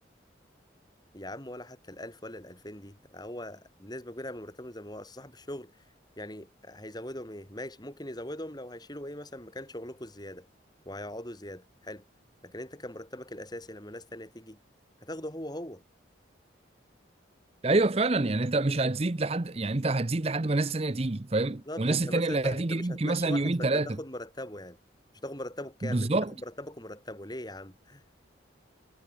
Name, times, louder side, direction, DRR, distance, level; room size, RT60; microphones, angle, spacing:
voice 1, 1.1-5.8 6.2-10.5 10.9-12.0 12.4-14.6 15.0-15.8 21.7-24.8 25.2-28.0, left 1 dB, 20° left, 4.3 m, -41 dB
voice 2, 17.6-24.0 25.8-26.3, right 2 dB, 30° right, 0.7 m, -27 dB
head